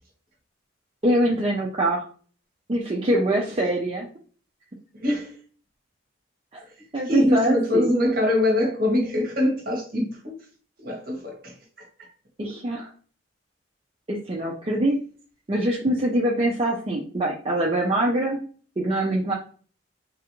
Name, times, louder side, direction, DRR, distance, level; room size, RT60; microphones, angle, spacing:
voice 1, 1.0-2.1 2.7-4.1 6.9-7.9 12.4-12.9 14.1-15.0 15.5-18.4 18.8-19.3, right 1 dB, 30° right, 0.4 m, -23 dB
voice 2, 4.9-5.3 7.1-10.4 10.8-12.1, left 1 dB, 45° right, 0.9 m, -24 dB
3.3 x 2.5 x 2.9 m
head